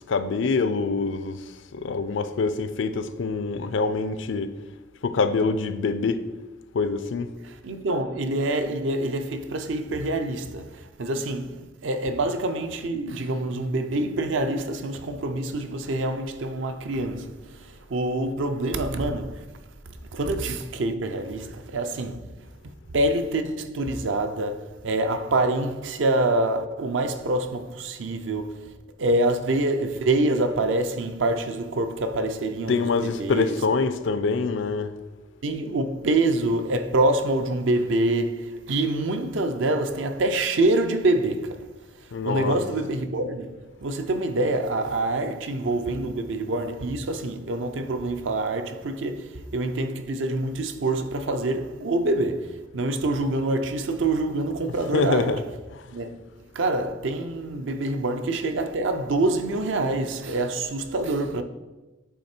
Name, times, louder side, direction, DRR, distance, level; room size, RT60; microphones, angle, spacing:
voice 1, 0.1-4.5 5.0-6.2 6.7-7.3 32.7-34.9 42.1-42.6 54.9-55.9, left 4 dB, 70° left, 0.4 m, -25 dB
voice 2, 7.4-19.5 20.1-22.3 22.9-28.7 29.0-33.6 35.4-41.7 42.2-55.4 55.9-56.2 56.5-61.4, right 2 dB, 75° right, 0.6 m, -26 dB
8.4 x 3.3 x 4.4 m
head